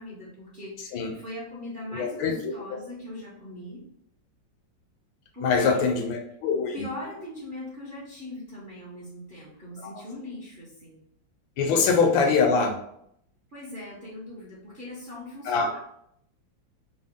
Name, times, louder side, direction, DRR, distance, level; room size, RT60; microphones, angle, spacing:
voice 1, 0.0-3.8 5.3-5.9 6.7-11.0 11.7-11.8 13.5-15.8, left 1 dB, 40° right, -7 dB, 0.7 m, -40 dB
voice 2, 1.9-2.8 5.4-6.9 9.8-9.9 11.6-12.8 15.4-15.7, left 5 dB, 80° left, 4 dB, 1.4 m, -24 dB
3.7 x 2.3 x 3.5 m, 0.72 s
omnidirectional pair, 2.1 m